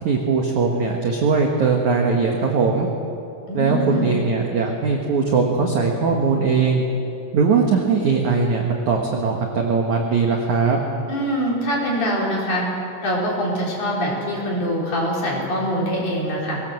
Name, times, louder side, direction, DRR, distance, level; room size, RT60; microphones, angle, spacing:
voice 1, 0.0-2.9 3.5-6.8 7.3-10.8, right 4 dB, 65° right, 1 dB, 2.0 m, -20 dB
voice 2, 3.5-4.1 11.1-12.6 13.0-16.6, equal, 40° left, -4 dB, 5.3 m, -24 dB
23.0 x 18.5 x 7.7 m, 2.7 s
omnidirectional pair, 5.6 m